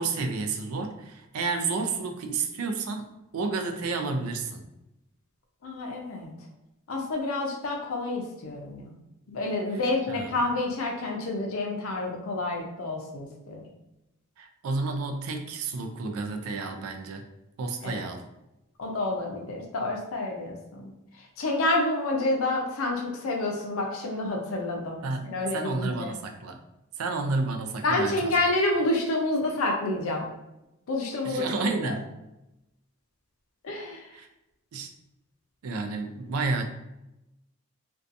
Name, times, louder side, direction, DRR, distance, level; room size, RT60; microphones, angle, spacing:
voice 1, 0.0-4.7 9.7-9.8 10.1-10.4 14.4-17.2 17.6-18.2 25.0-26.6 27.0-28.4 31.2-32.1 34.1-34.3 34.7-34.9 35.6-36.7, right 3 dB, 85° right, 5 dB, 0.4 m, -31 dB
voice 2, 5.6-6.3 6.9-8.9 9.3-13.6 17.8-18.1 18.8-20.9 21.4-26.1 27.8-30.3 30.9-31.9 33.6-34.1, left 2 dB, 70° left, 0 dB, 0.5 m, -29 dB
2.6 x 2.2 x 2.5 m, 0.92 s
head